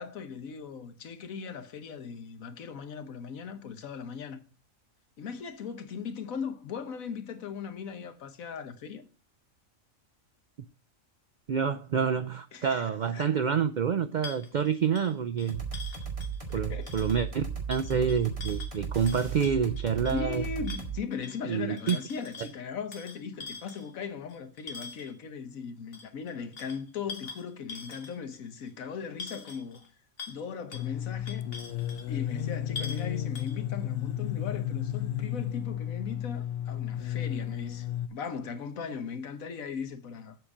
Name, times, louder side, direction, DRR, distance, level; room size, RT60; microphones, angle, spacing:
voice 1, 0.0-4.4 5.2-9.1 12.5-13.3 16.7-16.9 20.1-29.8 30.3-31.5 32.1-40.4, left 6 dB, 90° left, 1.4 m, -38 dB
voice 2, 11.5-15.6 16.5-20.4 21.5-22.0, right 7 dB, 85° right, 0.4 m, -28 dB
sound 1, 14.2-16.5 16.8-17.2 17.7-20.3 20.6-21.4 21.8-22.5 22.9-25.1 25.9-28.3 28.7-28.8 29.2-29.9 30.2-30.4 30.7-30.9 31.3-32.0 32.4-32.5 32.8-33.1 33.3-33.6, left 4 dB, 45° left, 1.5 m, -43 dB
sound 2, 15.5-21.0, right 6 dB, 25° right, 1.9 m, -36 dB
sound 3, 30.7-38.1, left 11 dB, 65° left, 0.9 m, -33 dB
7.7 x 5.1 x 7.1 m
omnidirectional pair, 1.4 m